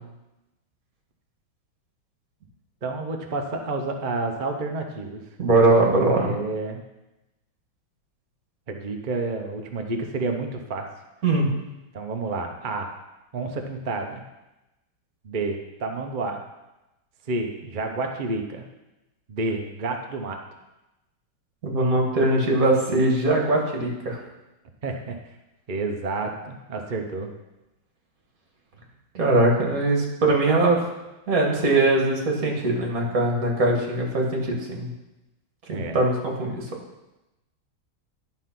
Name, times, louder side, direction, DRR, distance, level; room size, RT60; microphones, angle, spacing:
voice 1, 2.8-5.2 5.8-6.8 8.7-10.9 11.9-12.9 13.3-14.2 15.2-16.4 17.3-18.6 19.3-20.4 24.8-25.2 25.7-27.3 35.7-36.0, right 3 dB, 75° right, 3 dB, 0.4 m, -30 dB
voice 2, 5.4-6.3 11.2-11.5 21.6-24.2 29.1-30.8 31.3-34.9 35.7-36.6, right 2 dB, 45° right, 0 dB, 2.0 m, -21 dB
11.0 x 4.5 x 5.9 m, 0.98 s
omnidirectional pair, 2.2 m